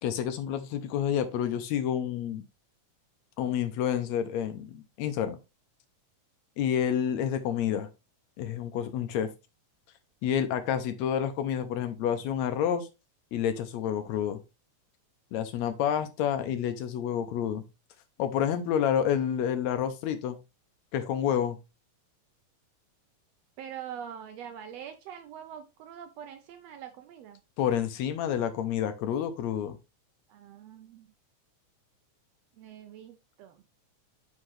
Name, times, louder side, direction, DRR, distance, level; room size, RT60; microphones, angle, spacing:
voice 1, 0.0-2.4 3.4-5.4 6.6-7.9 8.4-9.3 10.2-12.9 13.3-14.4 15.3-17.6 18.2-20.4 20.9-21.6 27.6-29.8, left 9 dB, 80° left, 1.8 m, -29 dB
voice 2, 23.6-27.4 30.3-31.1 32.6-33.6, right 9 dB, 80° right, 1.5 m, -44 dB
5.7 x 5.3 x 3.2 m
omnidirectional pair, 3.4 m